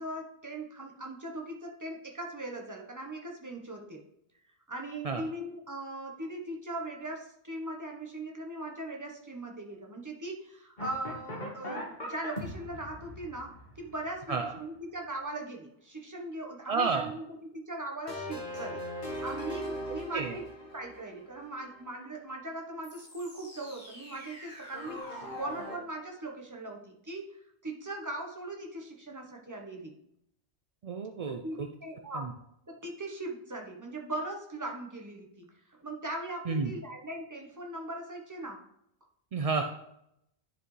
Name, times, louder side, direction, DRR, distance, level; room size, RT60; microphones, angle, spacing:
voice 1, 0.0-4.0 4.7-20.5 20.7-29.9 31.3-32.4 32.7-38.6, right 1 dB, 15° right, 1 dB, 1.1 m, -40 dB
sound 1, 10.8-14.9 18.1-21.8 22.8-25.8, equal, 45° left, 1.6 m, -41 dB
voice 2, 16.7-17.1 20.1-20.3 30.8-31.7 32.1-32.3 36.5-36.7 39.3-39.6, right 4 dB, 50° right, 5 dB, 0.4 m, -30 dB
10.0 x 4.9 x 3.2 m, 0.77 s
omnidirectional pair, 1.1 m